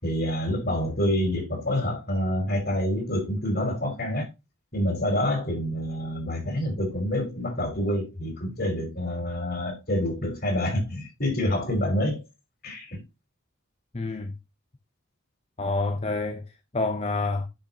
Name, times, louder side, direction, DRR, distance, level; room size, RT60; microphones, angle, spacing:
voice 1, 0.0-4.2 4.7-12.2 12.6-13.0, left 1 dB, 50° left, 5.0 m, -27 dB
voice 2, 13.9-14.3 15.6-16.4 16.7-17.5, left 3 dB, 30° left, 0.8 m, -27 dB
10.5 x 6.5 x 2.9 m
head